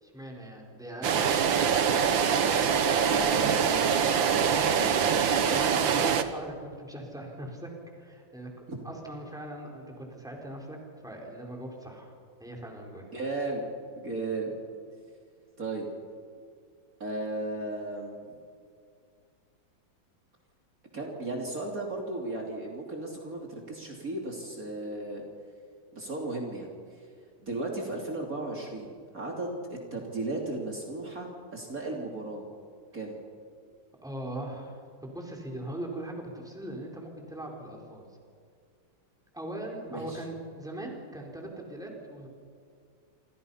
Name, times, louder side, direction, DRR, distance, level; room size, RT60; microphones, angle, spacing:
voice 1, 0.0-2.3 4.9-7.7 8.0-8.5 8.8-10.8 11.0-12.1 12.4-13.1 34.0-38.1 39.3-42.3, right 1 dB, ahead, 0 dB, 4.4 m, -40 dB
sound 1, 1.0-6.2, right 7 dB, 75° right, 2.0 m, -24 dB
voice 2, 3.0-3.9 8.7-8.8 13.1-13.6 14.0-14.6 15.6-15.9 17.0-18.2 20.9-25.3 25.9-27.1 27.4-32.5 32.9-33.2 39.9-40.2, right 2 dB, 45° right, 0 dB, 3.5 m, -35 dB
27.5 x 27.0 x 5.7 m, 2.2 s
omnidirectional pair, 2.1 m